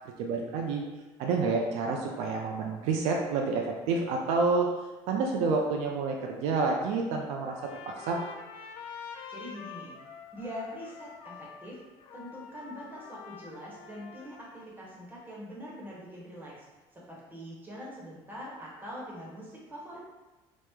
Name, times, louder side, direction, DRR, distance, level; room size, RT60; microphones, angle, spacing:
voice 1, 0.2-0.8 1.2-4.7 5.1-7.5 7.9-8.2, right 4 dB, 75° right, 1 dB, 0.4 m, -28 dB
Trumpet, 7.4-14.7, left 6 dB, 50° left, 0.4 m, -47 dB
voice 2, 9.3-9.9 10.3-11.8 12.1-16.6 16.9-20.0, equal, 15° right, -5 dB, 1.0 m, -43 dB
3.0 x 2.0 x 3.4 m, 1.2 s
cardioid pair, 130°, 11 cm